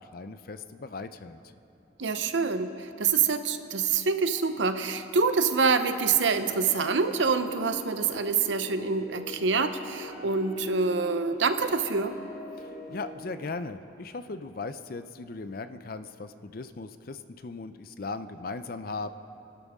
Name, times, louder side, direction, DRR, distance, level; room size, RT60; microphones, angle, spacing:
voice 1, 0.1-1.4 12.6-19.1, left 3 dB, 50° left, 11 dB, 0.5 m, -38 dB
voice 2, 2.0-12.2, right 5 dB, 85° right, 9 dB, 0.8 m, -26 dB
sound 1, 6.4-13.1, equal, ahead, 3.6 m, -43 dB
26.5 x 12.5 x 3.6 m, 2.9 s
head